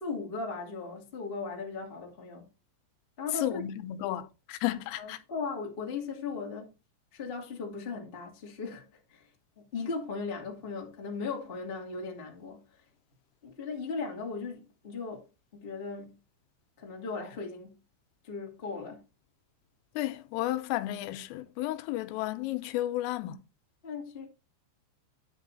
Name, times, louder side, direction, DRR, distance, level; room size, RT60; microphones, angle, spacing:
voice 1, 0.0-2.4 3.2-3.6 5.0-6.7 7.1-9.3 9.6-12.6 13.4-15.2 15.5-16.1 16.8-17.8 18.2-19.0 23.8-24.3, left 4 dB, 60° left, 0.6 m, -37 dB
voice 2, 3.4-5.2 20.0-23.4, left 14 dB, 85° left, 3.4 m, -33 dB
10.0 x 6.3 x 4.0 m
omnidirectional pair, 5.8 m